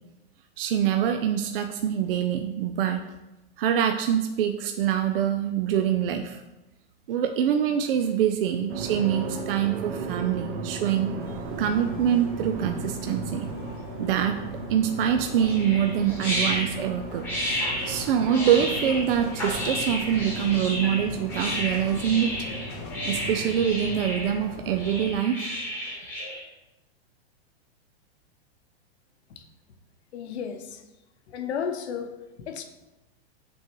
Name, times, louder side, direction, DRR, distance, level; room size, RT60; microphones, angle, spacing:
voice 1, 0.6-3.0 3.6-6.4 7.1-11.1 11.6-13.5 14.0-14.4 14.7-17.2 17.9-22.3 23.0-25.5, right 9 dB, 60° right, 6 dB, 0.5 m, -25 dB
sound 1, 8.7-24.0, right 4 dB, 75° right, 0.8 m, -37 dB
sound 2, 11.2-25.1, left 4 dB, 25° left, 0.4 m, -41 dB
sound 3, 15.4-26.4, equal, 5° left, 1.2 m, -32 dB
voice 2, 30.1-30.8 31.3-32.1 32.4-32.6, left 7 dB, 80° left, 6 dB, 0.9 m, -33 dB
8.3 x 3.8 x 3.0 m, 1.0 s
supercardioid pair, 170°, 32 cm